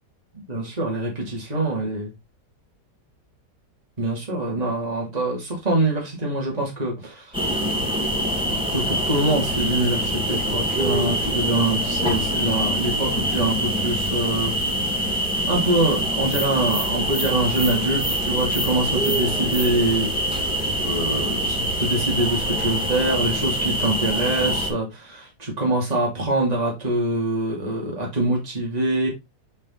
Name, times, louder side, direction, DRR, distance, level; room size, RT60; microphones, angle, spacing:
voice 1, 0.3-2.1 4.0-7.4 8.7-14.5 14.8-20.2 20.8-29.1, right 1 dB, 20° right, 2.6 m, -24 dB
sound 1, 7.3-24.7, equal, 5° right, 2.0 m, -24 dB
5.7 x 5.1 x 3.9 m
omnidirectional pair, 1.9 m